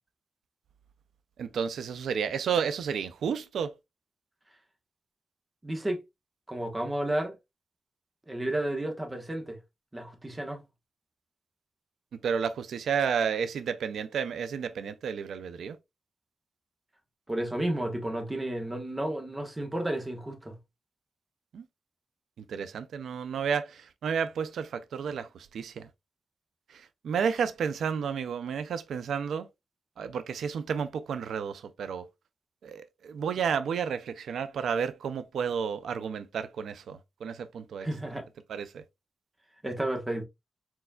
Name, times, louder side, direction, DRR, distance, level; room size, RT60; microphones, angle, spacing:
voice 1, 1.4-3.7 12.2-15.8 21.5-21.6 22.5-25.9 26.7-29.5 30.0-32.1 32.6-37.9 38.5-38.8, right 7 dB, 90° right, 0.4 m, -31 dB
voice 2, 5.6-6.0 6.5-7.3 8.3-9.6 9.9-10.6 17.3-20.5 37.8-38.2 39.6-40.2, right 1 dB, 15° right, 1.2 m, -32 dB
4.6 x 4.3 x 2.3 m
wide cardioid pair, 130°, 0 cm